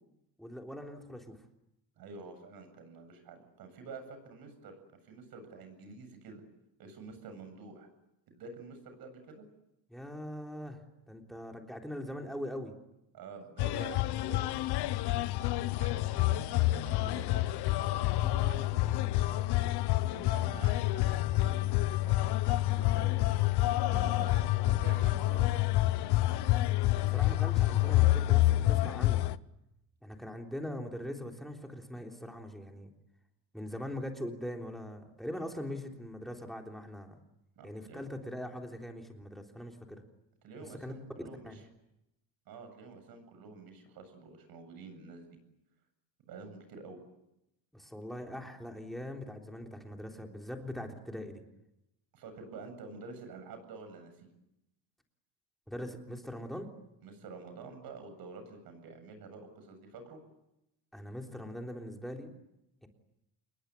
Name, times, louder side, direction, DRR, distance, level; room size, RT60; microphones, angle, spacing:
voice 1, 0.4-1.4 9.9-12.7 26.9-29.3 30.0-32.9 33.5-37.2 37.6-40.0 40.8-40.9 41.4-41.6 47.7-51.4 55.7-56.7 60.9-62.4 62.8-62.9, left 1 dB, ahead, 2 dB, 3.6 m, -41 dB
voice 2, 2.0-4.8 5.0-6.4 6.8-7.9 8.3-9.5 13.1-14.7 15.4-17.5 17.9-19.5 20.1-23.5 23.9-25.5 37.6-38.0 40.4-41.7 42.5-45.3 46.3-47.0 52.1-54.3 57.0-60.2, right 4 dB, 55° right, 8 dB, 7.9 m, -48 dB
sound 1, 13.6-29.4, left 16 dB, 65° left, 1.0 m, -28 dB
28.5 x 21.5 x 9.8 m, 0.88 s
cardioid pair, 160°, 42 cm